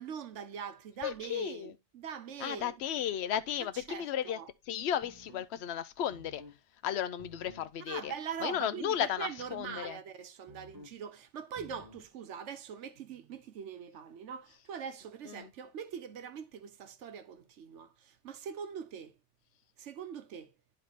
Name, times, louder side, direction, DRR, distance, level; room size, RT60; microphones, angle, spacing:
voice 1, 0.0-2.8 3.7-4.5 7.9-19.1 19.8-20.5, right 7 dB, 75° right, 1.1 m, -42 dB
voice 2, 1.0-1.7 2.4-4.4 4.7-6.4 6.8-8.1 8.4-10.0 15.3-15.5, left 10 dB, 65° left, 0.8 m, -34 dB
sound 1, 5.0-5.5 6.1-6.6 7.2-7.7 9.4-9.9 10.5-11.0 11.6-12.1, equal, 20° right, 1.5 m, -53 dB
9.9 x 3.7 x 4.0 m
omnidirectional pair, 1.3 m